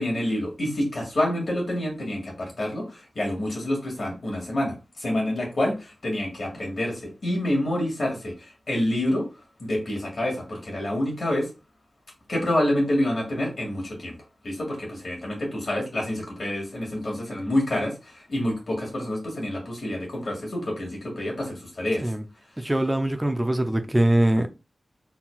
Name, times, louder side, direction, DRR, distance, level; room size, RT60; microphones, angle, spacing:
voice 1, 0.0-9.3 9.6-11.5 12.3-14.2 14.4-22.1 22.6-22.7, left 1 dB, 65° left, 2.1 m, -27 dB
voice 2, 22.6-24.5, right 1 dB, 15° right, 0.5 m, -22 dB
4.1 x 3.9 x 2.3 m
wide cardioid pair, 60°, 0 cm